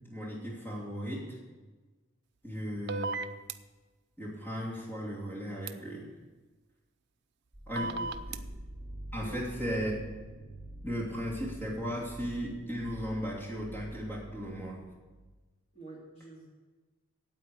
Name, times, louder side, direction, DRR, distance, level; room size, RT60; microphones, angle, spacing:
voice 1, 0.0-1.4 2.4-3.2 4.2-6.1 7.7-7.9 9.1-9.9 10.8-14.8, equal, 10° left, -5 dB, 2.9 m, -36 dB
sound 1, 2.9-3.5 5.7-5.8 7.8-8.4, right 3 dB, 55° right, 0.6 m, -34 dB
sound 2, 7.5-15.4, right 1 dB, 10° right, 4.7 m, -46 dB
voice 2, 7.7-8.1 9.0-9.4 15.7-16.5, right 2 dB, 30° left, -5 dB, 2.4 m, -46 dB
9.2 x 8.4 x 8.4 m, 1.3 s
head